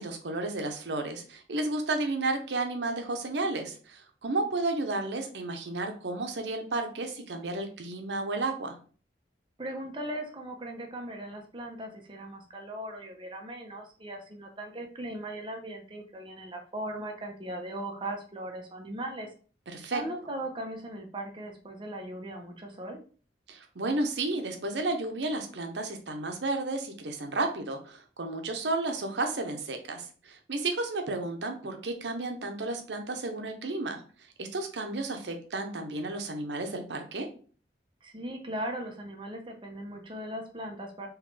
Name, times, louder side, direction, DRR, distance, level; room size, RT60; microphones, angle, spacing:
voice 1, 0.0-8.8 19.7-20.0 23.5-34.0 34.4-37.3, right 2 dB, 80° right, 5 dB, 0.7 m, -32 dB
voice 2, 9.6-19.3 19.9-23.0 38.0-41.1, right 1 dB, 30° right, 3 dB, 0.7 m, -38 dB
3.7 x 3.1 x 3.2 m, 0.41 s
head